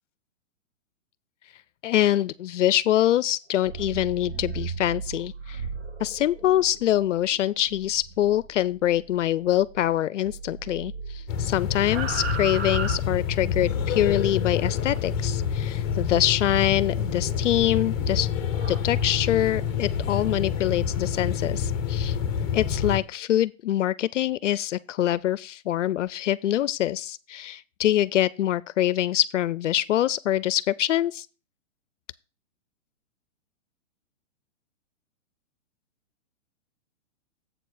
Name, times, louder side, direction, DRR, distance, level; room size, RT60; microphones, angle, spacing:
voice 1, 1.8-5.6 6.0-18.3 18.7-22.2 22.5-31.3, left 12 dB, 65° left, 0.5 m, -24 dB
sound 1, 3.5-10.0 10.2-13.6 15.0-16.3 17.0-19.6, right 5 dB, 55° right, 1.1 m, -38 dB
sound 2, 11.3-23.0, left 7 dB, 15° left, 0.8 m, -27 dB
7.8 x 4.2 x 6.5 m
hypercardioid pair, 165°, 39 cm